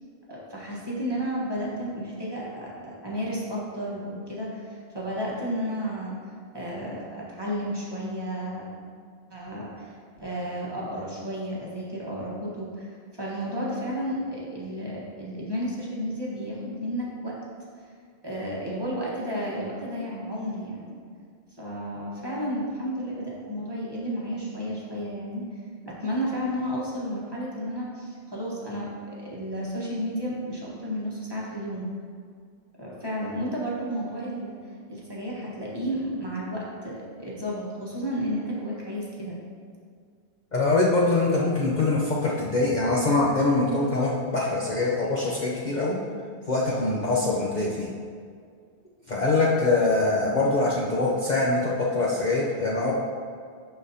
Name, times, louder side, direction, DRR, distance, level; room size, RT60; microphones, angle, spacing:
voice 1, 0.3-6.1 6.5-8.7 9.3-9.9 10.2-17.3 18.2-21.0 21.6-25.6 25.8-28.9 29.2-31.9 32.8-34.6 34.9-39.4 44.8-44.9, equal, 20° right, -6 dB, 1.2 m, -32 dB
voice 2, 40.5-46.0 46.5-47.9 49.1-52.9, left 2 dB, 45° left, -5 dB, 0.7 m, -23 dB
11.5 x 4.1 x 2.8 m, 2.1 s
omnidirectional pair, 1.2 m